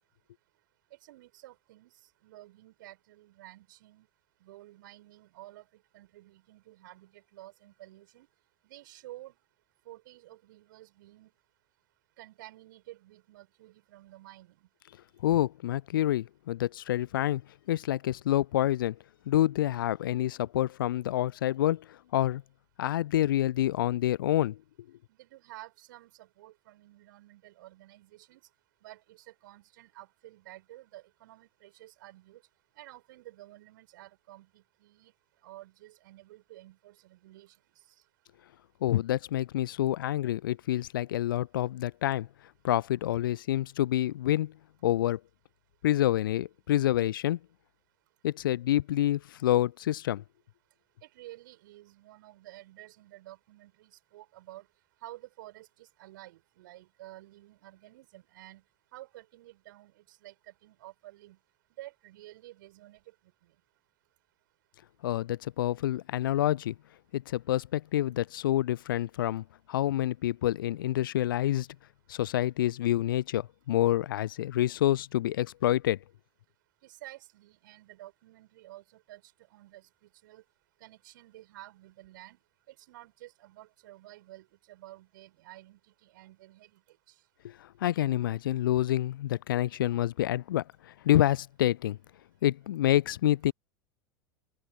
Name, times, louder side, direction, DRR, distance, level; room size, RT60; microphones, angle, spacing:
voice 1, 0.9-1.9 2.2-4.1 4.4-5.7 5.9-8.3 8.6-9.3 9.8-11.3 12.2-14.7 25.1-28.4 28.8-32.4 32.8-35.1 35.4-37.5 51.0-54.7 55.0-58.6 58.9-61.4 61.8-63.0 76.8-79.2 79.5-80.4 80.8-82.4 82.7-86.8, right 16 dB, 60° right, 5.1 m, -51 dB
voice 2, 15.2-17.4 17.7-19.0 19.3-21.8 22.1-22.4 22.8-24.6 38.8-42.3 42.6-44.5 44.8-45.2 45.8-47.4 48.2-50.2 65.0-66.7 67.1-71.7 72.1-76.0 87.8-90.6 91.0-92.0 92.4-93.5, left 13 dB, 65° left, 0.5 m, -27 dB
open air
figure-of-eight pair, 80°, 12 cm